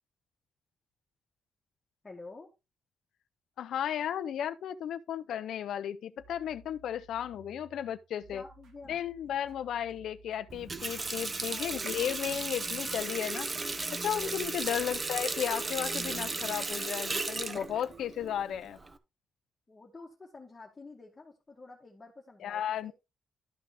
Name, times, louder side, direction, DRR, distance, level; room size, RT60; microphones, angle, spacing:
voice 1, 2.0-2.5 8.3-9.0 11.5-12.6 19.7-22.9, left 3 dB, 15° left, 1.8 m, -50 dB
voice 2, 3.6-8.4 8.9-13.5 13.9-18.8 22.4-22.9, left 10 dB, 75° left, 0.5 m, -34 dB
sound 1, 6.2-12.1, right 4 dB, 75° right, 2.5 m, -57 dB
Water tap faucet, 10.5-19.0, right 3 dB, 20° right, 0.8 m, -35 dB
12.0 x 5.9 x 3.4 m
wide cardioid pair, 180°, 0 cm